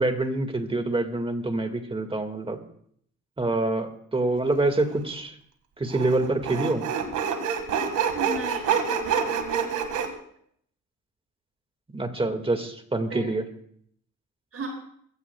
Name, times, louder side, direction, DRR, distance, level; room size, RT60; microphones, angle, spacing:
voice 1, 0.0-2.6 3.4-5.4 5.8-6.9 11.9-13.5, right 2 dB, 20° right, 6 dB, 1.9 m, -26 dB
Sawing, 4.7-4.8 5.9-10.1, right 7 dB, 80° right, 1.9 m, -27 dB
voice 2, 8.1-9.8 13.1-13.3 14.5-14.7, right 3 dB, 50° right, 0 dB, 6.4 m, -36 dB
21.5 x 16.0 x 2.3 m, 0.64 s
cardioid pair, 90°, 30 cm